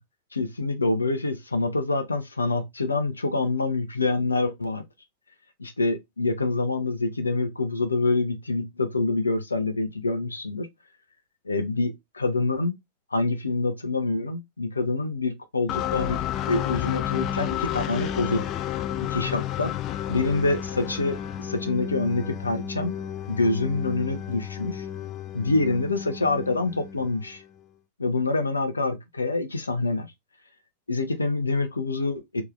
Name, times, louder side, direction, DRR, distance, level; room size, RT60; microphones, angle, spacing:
voice 1, 0.3-4.8 5.6-10.7 11.4-12.7 13.1-16.2 16.5-18.4 19.1-19.7 20.1-22.9 23.3-24.8 25.3-27.4 28.0-30.1 30.9-32.4, left 3 dB, 80° left, 0.6 m, -26 dB
sound 1, 15.7-27.5, left 10 dB, 35° left, 0.3 m, -31 dB
3.5 x 3.0 x 3.0 m
figure-of-eight pair, 90°, 0 cm